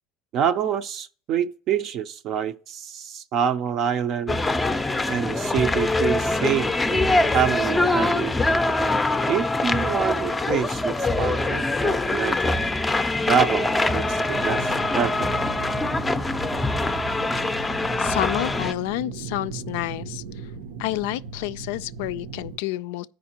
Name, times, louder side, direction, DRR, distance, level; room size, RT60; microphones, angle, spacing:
voice 1, 0.3-4.4 5.1-7.1 7.3-8.3 9.3-12.5 13.3-15.3, right 8 dB, 50° right, 0.5 m, -26 dB
sound 1, 4.3-18.7, left 2 dB, 10° left, 0.5 m, -23 dB
sound 2, 14.3-22.6, right 5 dB, 85° right, 0.7 m, -37 dB
voice 2, 18.0-20.5 20.8-23.1, left 16 dB, 80° left, 0.3 m, -29 dB
13.0 x 5.1 x 2.8 m
supercardioid pair, 125°, 0 cm